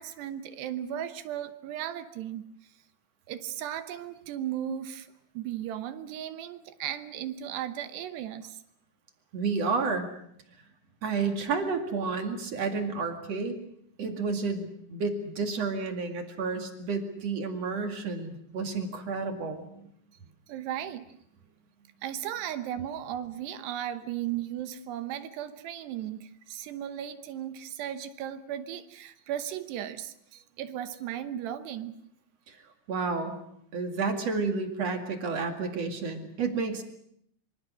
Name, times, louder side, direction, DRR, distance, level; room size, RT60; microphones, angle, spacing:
voice 1, 0.0-2.4 3.3-5.1 5.3-8.6 20.5-21.0 22.0-32.0, right 11 dB, 75° right, 11 dB, 3.0 m, -36 dB
voice 2, 9.3-10.1 11.0-13.6 14.0-19.9 32.5-32.6 32.9-33.3 33.7-36.8, right 4 dB, 45° right, 5 dB, 2.7 m, -31 dB
25.5 x 25.0 x 6.3 m, 0.71 s
omnidirectional pair, 5.1 m